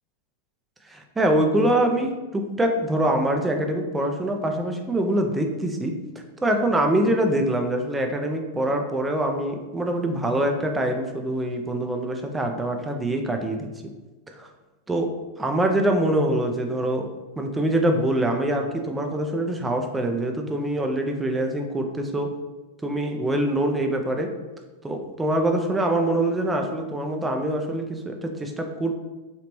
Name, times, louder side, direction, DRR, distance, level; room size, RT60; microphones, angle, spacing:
voice 1, 0.9-5.9 6.4-13.7 14.4-14.5 14.9-15.1 15.4-17.1 17.4-22.3 22.8-24.3 24.8-29.0, right 1 dB, 10° right, 3 dB, 0.5 m, -24 dB
3.2 x 2.9 x 3.0 m, 1.2 s
figure-of-eight pair, 90°, 0 cm